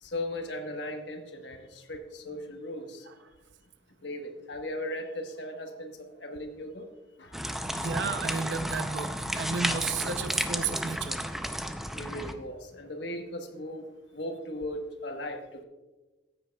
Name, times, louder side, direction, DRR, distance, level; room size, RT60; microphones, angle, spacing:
voice 1, 0.0-3.1 4.0-6.9 7.2-7.4 11.9-13.9 14.1-15.6, left 1 dB, 75° left, 4 dB, 1.3 m, -37 dB
sound 1, 7.3-12.3, equal, ahead, 0.5 m, -32 dB
voice 2, 7.7-11.2, right 5 dB, 85° right, 9 dB, 0.6 m, -33 dB
14.5 x 9.4 x 2.3 m, 1.1 s
head